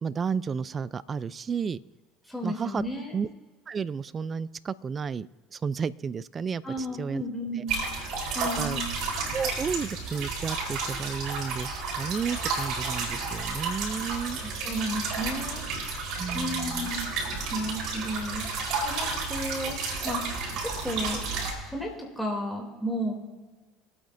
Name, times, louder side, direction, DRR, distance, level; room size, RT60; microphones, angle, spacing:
voice 1, 0.0-1.8 2.4-2.8 3.1-3.3 3.7-7.2 7.5-7.6 8.6-8.8 9.3-14.4 16.2-16.9, right 6 dB, 35° right, 19 dB, 0.4 m, -32 dB
voice 2, 2.3-3.2 6.6-7.8 8.3-8.8 14.4-15.6 16.3-17.1 17.5-18.5 18.8-19.8 20.0-20.2 20.8-21.2 21.7-23.1, equal, ahead, 0 dB, 2.9 m, -33 dB
sound 1, 7.7-21.5, right 4 dB, 60° right, 4.2 m, -32 dB
24.5 x 8.9 x 2.7 m, 1.4 s
supercardioid pair, 85°, 0 cm